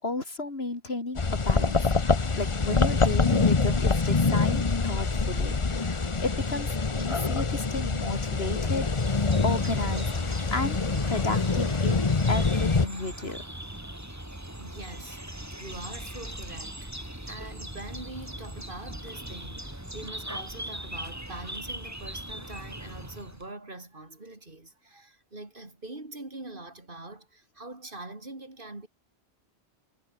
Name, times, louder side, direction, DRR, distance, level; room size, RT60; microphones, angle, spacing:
voice 1, 0.0-1.9 2.4-9.1 9.4-10.8 11.1-13.5, left 2 dB, 70° left, 3.5 m, -33 dB
sound 1, 1.2-12.9, left 4 dB, 30° left, 1.1 m, -25 dB
sound 2, 8.6-23.5, right 1 dB, 15° right, 3.2 m, -40 dB
voice 2, 14.6-15.2 15.6-28.9, right 2 dB, 55° right, 4.0 m, -43 dB
omnidirectional pair, 1.1 m